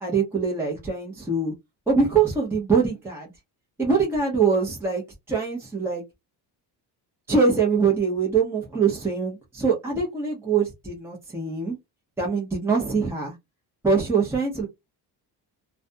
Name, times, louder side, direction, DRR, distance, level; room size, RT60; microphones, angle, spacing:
voice 1, 0.0-1.5 1.9-3.3 3.8-5.0 5.3-6.0 7.3-11.8 12.2-13.3 13.8-14.7, right 5 dB, 5° right, 0.8 m, -23 dB
2.4 x 2.3 x 2.5 m
cardioid pair, 130°, 40 cm